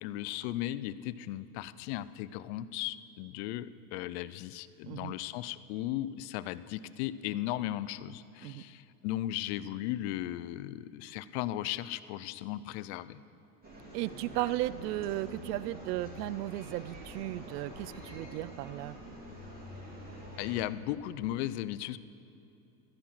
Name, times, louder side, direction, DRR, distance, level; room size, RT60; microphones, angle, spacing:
voice 1, 0.0-13.2 20.4-22.0, left 14 dB, 45° left, 16 dB, 0.4 m, -36 dB
sound 1, 13.6-20.6, equal, 20° right, 3.3 m, -46 dB
voice 2, 13.9-19.0, right 15 dB, 75° right, 18 dB, 0.5 m, -35 dB
13.5 x 10.0 x 6.0 m, 2.9 s
supercardioid pair, 140°, 48 cm